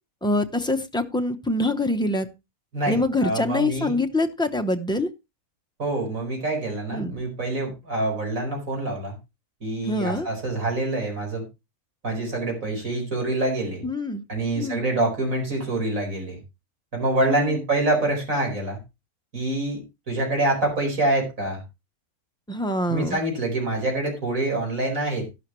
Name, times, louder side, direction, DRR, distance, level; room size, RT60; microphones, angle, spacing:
voice 1, 0.2-2.3 2.9-5.1 6.9-7.1 9.8-10.3 13.8-14.2 14.6-14.8 17.3-17.6 22.5-23.2, left 1 dB, 5° left, 6 dB, 0.5 m, -25 dB
voice 2, 2.7-4.0 5.8-9.1 9.6-11.4 12.0-13.8 14.3-16.4 16.9-18.8 19.3-19.8 20.1-21.6 22.9-25.3, right 2 dB, 60° right, 1 dB, 5.1 m, -26 dB
12.0 x 11.5 x 3.1 m, 0.25 s
omnidirectional pair, 1.6 m